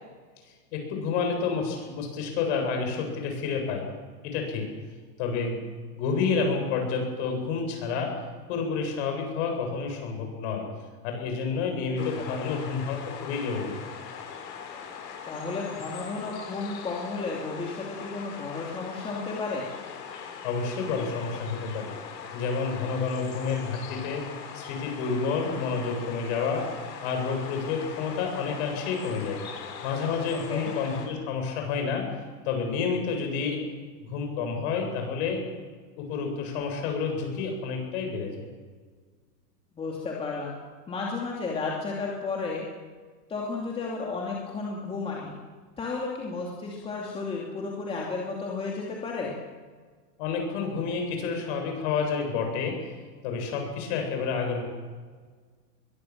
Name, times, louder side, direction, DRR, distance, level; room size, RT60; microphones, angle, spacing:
voice 1, 0.7-3.9 4.2-4.7 5.2-5.6 5.9-8.1 8.5-10.7 11.0-13.8 20.4-21.9 22.3-24.2 24.5-26.7 27.0-29.4 29.8-32.1 32.4-33.6 34.1-35.4 36.0-38.5 50.2-52.8 53.2-54.6, left 5 dB, 40° left, 3 dB, 8.0 m, -29 dB
sound 1, 12.0-31.1, left 7 dB, 80° left, 7.8 m, -41 dB
voice 2, 12.3-12.6 15.3-19.7 30.3-30.7 39.8-40.6 40.9-42.7 43.3-45.3 45.8-49.4, left 4 dB, 10° left, -2 dB, 2.7 m, -33 dB
23.0 x 23.0 x 7.5 m, 1.5 s
supercardioid pair, 170°, 49 cm